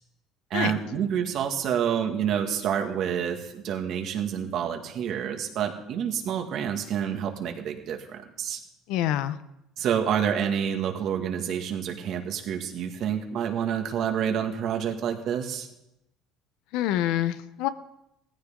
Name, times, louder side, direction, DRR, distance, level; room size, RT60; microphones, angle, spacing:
voice 1, 0.5-8.6 9.8-15.7, right 8 dB, 55° right, 4 dB, 1.9 m, -28 dB
voice 2, 8.9-9.4 16.7-17.7, left 12 dB, 75° left, 13 dB, 0.7 m, -26 dB
16.5 x 14.5 x 3.8 m, 0.86 s
cardioid pair, 120°, 0 cm